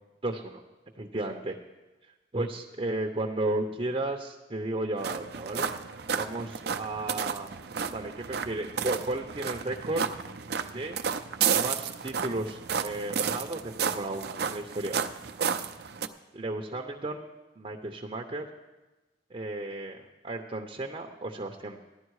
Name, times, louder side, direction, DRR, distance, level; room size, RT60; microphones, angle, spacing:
voice 1, 0.2-0.6 1.0-1.6 2.3-5.7 6.2-7.5 7.9-10.0 10.7-11.0 11.5-15.0 16.3-17.2 17.6-18.5 19.3-21.8, right 2 dB, 30° right, 2 dB, 0.8 m, -34 dB
sound 1, 5.0-16.1, right 7 dB, 60° right, 0.6 m, -32 dB
15.0 x 11.0 x 4.8 m, 1.1 s
head